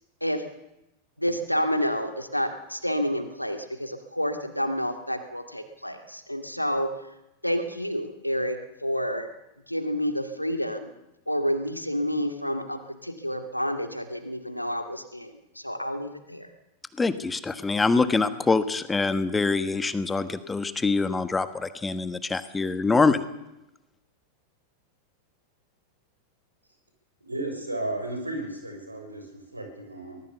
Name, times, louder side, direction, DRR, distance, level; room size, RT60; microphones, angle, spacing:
voice 1, 1.2-6.9 7.4-9.3 9.7-10.9 11.3-16.5, equal, 90° left, 7 dB, 2.3 m, -29 dB
voice 2, 17.0-23.2, left 4 dB, 10° left, 12 dB, 1.4 m, -24 dB
voice 3, 27.2-30.2, right 2 dB, 85° right, 3 dB, 6.2 m, -34 dB
24.0 x 19.0 x 7.0 m, 0.90 s
figure-of-eight pair, 90°, 0 cm